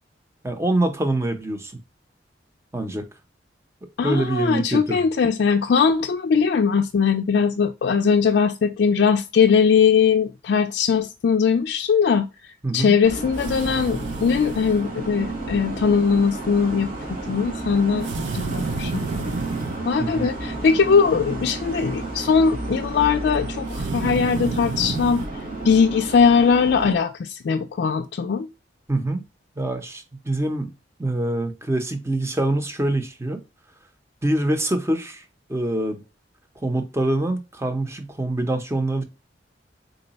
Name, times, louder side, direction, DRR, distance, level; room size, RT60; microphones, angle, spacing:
voice 1, 0.4-1.7 2.7-3.1 4.0-5.1 12.6-12.9 20.0-20.3 28.9-29.2 29.6-30.7 31.0-33.4 34.2-35.2 35.5-36.0 36.6-39.0, right 1 dB, 15° right, 0.6 m, -25 dB
voice 2, 4.0-16.9 17.3-18.1 18.3-19.2 19.9-25.2 25.6-28.5, left 6 dB, 60° left, 0.3 m, -20 dB
sound 1, 13.0-26.9, right 2 dB, 50° right, 1.2 m, -32 dB
sound 2, 13.3-14.9 18.0-19.8 23.7-25.3, right 3 dB, 80° right, 0.5 m, -30 dB
3.8 x 2.1 x 3.9 m
head